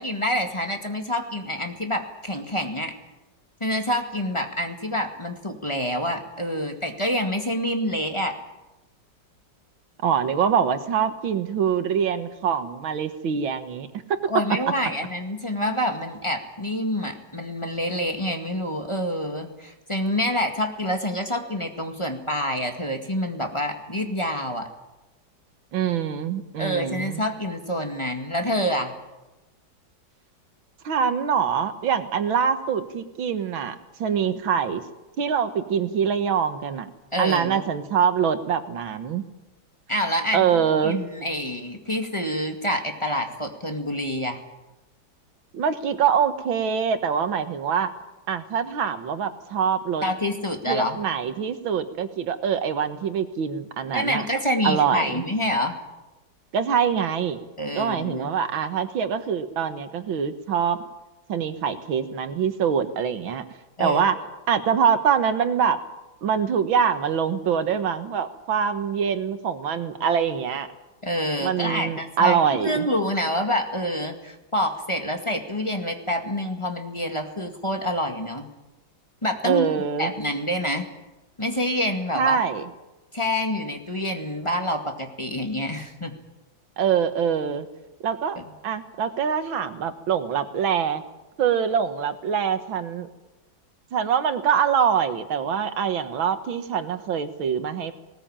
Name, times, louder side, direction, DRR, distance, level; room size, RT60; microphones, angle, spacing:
voice 1, 0.0-2.9 3.6-8.3 14.3-24.7 26.6-28.9 37.1-37.7 39.9-40.5 40.8-44.4 50.0-51.0 53.9-55.8 57.6-58.3 63.8-64.1 71.0-78.5 79.2-79.7 80.0-80.9 81.4-82.4 83.1-86.2 88.4-88.5, equal, 15° left, 4 dB, 2.0 m, -27 dB
voice 2, 10.0-14.2 25.7-27.2 30.8-34.8 35.2-36.9 37.2-39.2 40.3-41.0 45.5-47.9 48.3-50.1 50.7-54.3 54.6-55.2 56.5-57.4 57.8-60.8 61.3-63.4 63.8-64.2 64.5-65.8 66.2-70.7 71.4-72.9 79.4-80.1 82.2-82.7 86.8-87.7 88.0-88.4 88.6-91.0 91.4-93.1 93.9-97.9, right 7 dB, 85° right, 9 dB, 2.1 m, -24 dB
19.5 x 19.0 x 8.9 m, 1.0 s
omnidirectional pair, 2.1 m